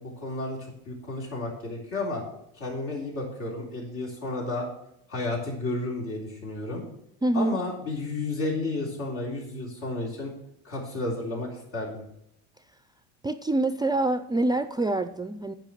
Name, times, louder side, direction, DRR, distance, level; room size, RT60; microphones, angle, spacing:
voice 1, 0.0-2.2 2.5-4.7 5.1-6.8 7.3-10.3 10.6-12.0, left 2 dB, 75° left, -2 dB, 3.9 m, -32 dB
voice 2, 7.2-7.6 13.2-15.5, right 2 dB, 10° right, 11 dB, 0.3 m, -26 dB
8.9 x 5.2 x 7.4 m, 0.78 s
supercardioid pair, 85°, 37 cm